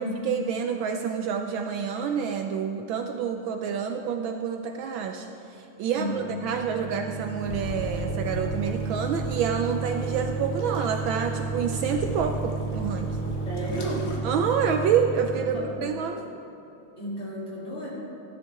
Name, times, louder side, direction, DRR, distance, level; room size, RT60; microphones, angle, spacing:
voice 1, 0.2-13.2 14.2-16.3, right 7 dB, 75° right, 5 dB, 1.3 m, -28 dB
voice 2, 5.9-6.3 13.5-14.1 15.5-15.9 17.0-17.9, equal, 30° left, -8 dB, 3.2 m, -33 dB
sound 1, 5.9-15.8, right 4 dB, 55° right, 1.6 m, -33 dB
sound 2, 7.4-14.2, left 1 dB, 70° left, 2.3 m, -38 dB
15.5 x 11.5 x 3.5 m, 2.9 s
omnidirectional pair, 2.4 m